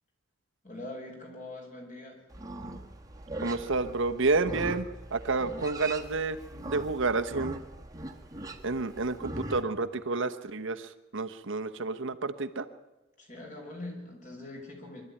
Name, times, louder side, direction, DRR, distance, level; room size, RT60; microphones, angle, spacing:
voice 1, 0.6-2.2 13.2-15.0, left 2 dB, 40° left, 0 dB, 6.3 m, -42 dB
Livestock farm animals working animals, 2.3-9.6, right 1 dB, 15° right, 1.5 m, -41 dB
voice 2, 3.4-7.6 8.6-12.6, right 3 dB, 60° right, 8 dB, 1.1 m, -30 dB
24.0 x 13.0 x 10.0 m, 1.1 s
head